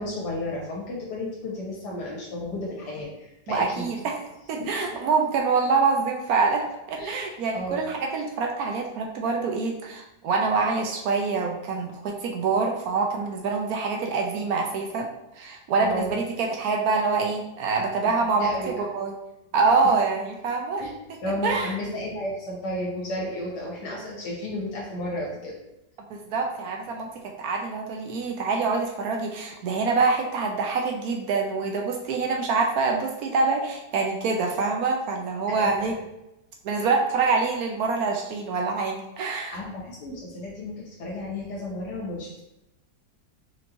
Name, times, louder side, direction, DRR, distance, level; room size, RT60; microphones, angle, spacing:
voice 1, 0.0-3.9 4.6-4.7 7.0-7.2 7.5-7.8 15.8-16.2 18.4-18.7 20.8-20.9 21.2-25.5 35.5-35.9 39.5-40.7 41.0-42.4, left 1 dB, 80° left, -4 dB, 1.8 m, -33 dB
voice 2, 3.5-4.2 4.5-6.6 6.9-15.1 15.4-19.1 19.5-20.8 21.4-21.7 26.1-36.0 36.6-39.5, right 4 dB, 70° right, 1 dB, 1.0 m, -25 dB
4.4 x 2.9 x 2.6 m, 0.89 s
omnidirectional pair, 1.8 m